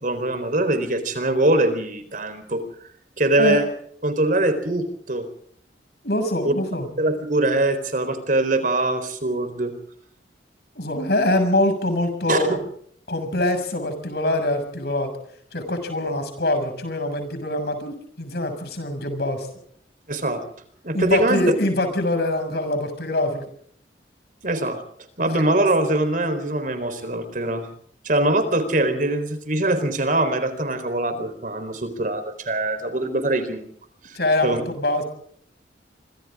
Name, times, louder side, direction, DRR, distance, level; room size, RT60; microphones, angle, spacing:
voice 1, 0.0-2.6 3.2-3.6 4.0-5.3 6.4-6.5 7.0-9.7 12.3-12.4 20.1-20.4 20.8-21.4 24.4-24.8 25.2-27.7 28.0-33.7 34.0-34.2 34.4-34.6, right 2 dB, 45° right, 9 dB, 4.2 m, -22 dB
voice 2, 6.0-6.9 10.8-12.6 13.1-15.1 15.5-19.5 20.9-23.4 34.1-35.0, left 1 dB, 60° left, 7 dB, 6.8 m, -24 dB
27.5 x 25.5 x 3.8 m, 0.62 s
head